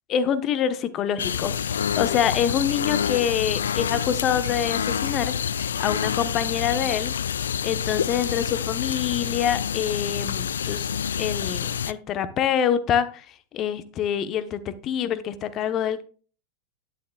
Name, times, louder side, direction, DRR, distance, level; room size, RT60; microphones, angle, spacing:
voice 1, 0.1-5.3 5.8-7.1 7.6-10.9 11.2-16.0, left 9 dB, 35° left, 12 dB, 1.0 m, -26 dB
sound 1, 1.2-11.9, left 8 dB, 65° left, 0.3 m, -27 dB
Hammer, 2.7-3.9 4.4-6.0, equal, 85° left, 2.9 m, -49 dB
11.0 x 11.0 x 2.3 m, 0.38 s
figure-of-eight pair, 90°, 0 cm